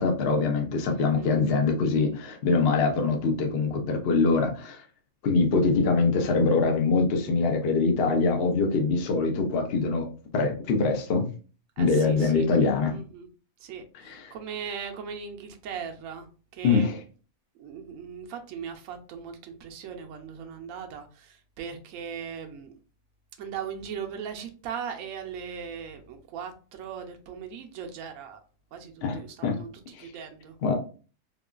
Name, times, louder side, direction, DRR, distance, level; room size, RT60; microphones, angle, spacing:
voice 1, 0.0-4.8 5.2-10.1 10.3-11.3 11.8-13.0 14.0-14.3 16.6-17.0 29.0-29.6 29.9-30.1 30.6-30.7, left 4 dB, 55° left, 3 dB, 0.7 m, -24 dB
voice 2, 0.9-1.3 11.8-12.5 12.9-13.3 13.6-16.3 16.5-16.9 17.6-22.8 23.4-28.4 28.7-29.7 30.0-30.5, right 7 dB, 70° right, 4 dB, 0.9 m, -39 dB
3.6 x 2.3 x 2.3 m, 0.36 s
omnidirectional pair, 1.5 m